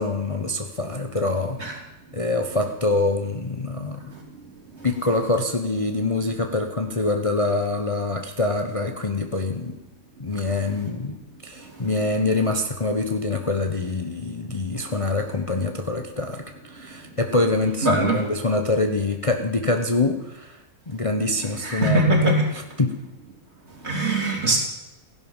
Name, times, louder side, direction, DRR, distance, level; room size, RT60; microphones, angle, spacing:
voice 1, 0.0-1.8 2.1-4.0 4.8-9.8 10.2-11.1 11.4-20.5 20.9-22.3 22.8-22.9, left 2 dB, 25° left, 5 dB, 1.1 m, -25 dB
voice 2, 17.8-18.2 21.4-22.4 23.8-24.6, right 2 dB, 50° right, 0 dB, 3.9 m, -21 dB
15.5 x 11.5 x 7.3 m, 0.97 s
omnidirectional pair, 1.5 m